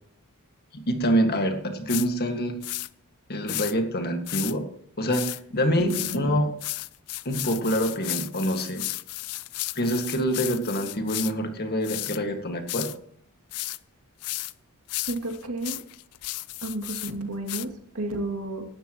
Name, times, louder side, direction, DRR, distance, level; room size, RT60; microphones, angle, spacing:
voice 1, 0.7-2.6 3.3-4.7 5.0-6.5 7.3-8.8 9.8-12.9, equal, 45° left, 5 dB, 1.9 m, -26 dB
sound 1, 1.9-2.1 2.6-2.9 3.5-3.7 4.3-4.5 5.1-5.4 5.9-6.2 6.6-11.3 11.8-12.2 12.7-13.0 13.5-13.8 14.2-14.5 14.9-17.1 17.5-17.7, left 18 dB, 85° left, 0.5 m, -33 dB
voice 2, 5.8-6.4 15.1-15.8 16.6-18.6, right 1 dB, 70° right, 2 dB, 2.7 m, -32 dB
18.5 x 12.5 x 3.1 m, 0.65 s
head